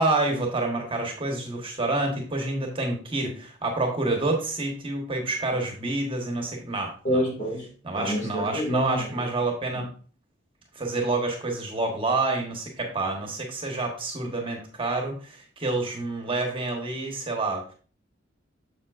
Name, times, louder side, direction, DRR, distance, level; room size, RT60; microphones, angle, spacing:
voice 1, 0.0-7.2 7.8-9.9 10.7-17.6, right 2 dB, 25° right, 1.3 m, -28 dB
voice 2, 7.0-9.2 9.7-9.8, equal, 40° left, 2.2 m, -28 dB
7.3 x 6.8 x 2.5 m
head